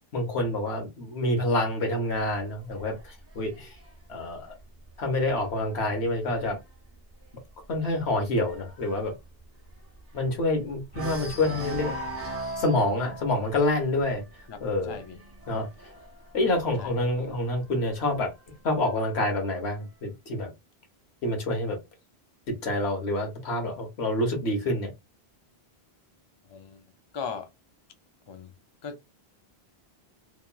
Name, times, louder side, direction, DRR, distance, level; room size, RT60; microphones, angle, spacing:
voice 1, 0.1-3.7 4.1-4.5 5.0-6.6 7.7-9.1 10.1-12.0 12.6-14.2 14.6-15.0 15.5-15.7 16.3-18.3 18.6-20.5 21.2-21.8 22.5-24.9, left 2 dB, 90° left, 1.2 m, -27 dB
sound 1, 2.2-5.7 6.2-6.5 6.7-6.8 7.2-10.5 10.9-17.4 18.3-19.3, right 1 dB, 15° right, 0.5 m, -40 dB
voice 2, 14.5-15.2 16.8-17.0 26.4-26.8 27.1-27.5 28.3-28.5 28.8-29.0, left 6 dB, 45° left, 0.3 m, -38 dB
3.0 x 2.3 x 2.2 m
omnidirectional pair, 1.1 m